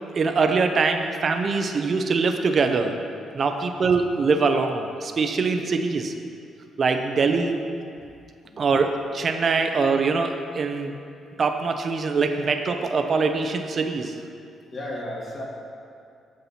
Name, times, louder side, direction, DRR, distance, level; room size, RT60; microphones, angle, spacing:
voice 1, 0.1-2.9 3.3-6.1 6.8-7.6 8.6-10.9 11.4-14.1, right 4 dB, 45° right, 6 dB, 0.7 m, -23 dB
voice 2, 14.7-15.4, left 1 dB, 40° left, -4 dB, 2.3 m, -35 dB
7.7 x 7.0 x 5.8 m, 2.4 s
cardioid pair, 90°, 0 cm